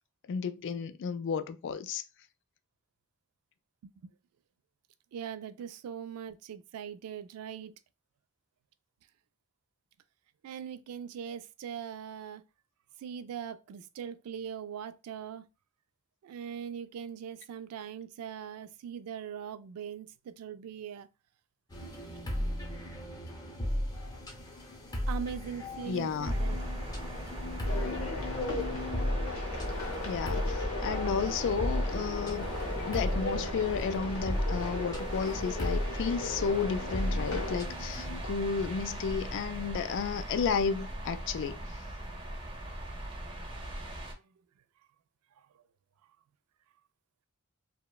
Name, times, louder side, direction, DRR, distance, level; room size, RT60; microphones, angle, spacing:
voice 1, 0.3-2.0 25.9-26.3 30.0-32.5 32.9-41.6, left 6 dB, 55° left, 0.3 m, -32 dB
voice 2, 3.8-4.1 5.1-7.7 10.4-12.4 13.0-15.4 16.2-21.1 21.8-21.9 23.9-24.1 25.1-26.6 45.4-45.6, right 8 dB, 85° right, 0.3 m, -41 dB
sound 1, 21.7-38.2, left 1 dB, 20° left, 0.7 m, -35 dB
sound 2, 26.2-44.1, right 1 dB, 25° right, 0.6 m, -40 dB
sound 3, 27.7-37.6, left 3 dB, 75° left, 0.7 m, -38 dB
2.9 x 2.1 x 2.3 m
head